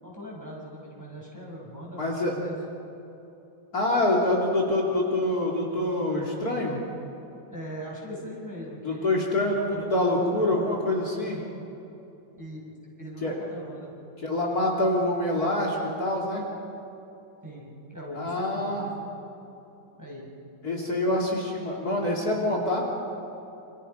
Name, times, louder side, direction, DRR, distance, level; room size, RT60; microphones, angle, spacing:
voice 1, 0.0-2.5 7.5-9.2 9.7-10.7 12.3-13.9 17.4-18.9 20.0-20.3, equal, 10° right, -4 dB, 5.9 m, -40 dB
voice 2, 2.0-2.3 3.7-6.8 8.8-11.4 13.2-13.3 14.2-16.4 18.1-18.9 20.6-22.8, left 1 dB, 50° left, -2 dB, 3.3 m, -26 dB
28.5 x 27.5 x 5.6 m, 2.9 s
omnidirectional pair, 2.1 m